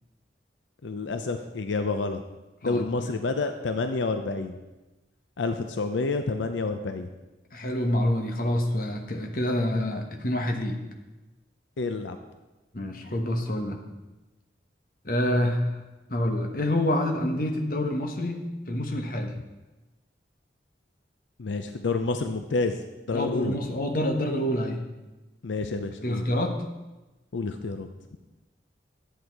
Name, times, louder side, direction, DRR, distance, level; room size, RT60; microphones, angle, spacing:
voice 1, 0.8-2.2 2.6-4.6 5.4-7.1 11.8-12.2 21.4-22.8 23.1-23.5 25.4-26.3 27.3-27.9, left 3 dB, 85° left, 7 dB, 0.6 m, -29 dB
voice 2, 2.6-3.1 7.5-10.8 12.7-13.8 15.0-15.8 16.1-19.3 23.1-24.8 26.0-26.6, left 1 dB, 50° left, 3 dB, 1.2 m, -27 dB
11.0 x 8.2 x 4.6 m, 1.1 s
head